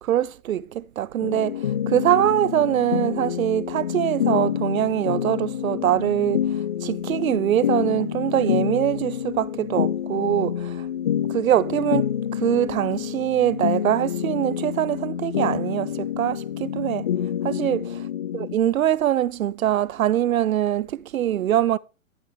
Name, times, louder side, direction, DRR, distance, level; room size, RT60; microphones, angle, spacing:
voice 1, 0.0-6.4 6.8-10.9 11.3-17.1 17.4-18.0 18.3-21.8, right 11 dB, 85° right, 0.6 m, -23 dB
sound 1, 1.2-18.5, left 9 dB, 30° left, 0.4 m, -27 dB
14.5 x 7.7 x 3.2 m
hypercardioid pair, 150°, 40 cm